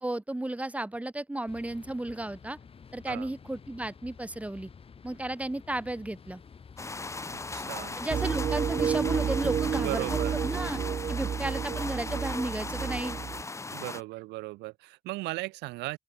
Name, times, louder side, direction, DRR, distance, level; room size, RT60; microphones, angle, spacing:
voice 1, 0.0-2.6 2.9-4.7 5.0-6.4 7.9-10.8 11.1-13.2, right 1 dB, 10° right, 1.8 m, -33 dB
sound 1, 1.5-10.9, left 6 dB, 35° left, 5.0 m, -50 dB
sound 2, 6.8-14.0, left 3 dB, 15° left, 2.1 m, -38 dB
voice 2, 7.3-8.0 9.8-10.4 13.7-16.0, right 21 dB, 90° right, 2.0 m, -37 dB
sound 3, 8.1-13.4, right 7 dB, 30° right, 0.4 m, -30 dB
open air
cardioid pair, 110°, 17 cm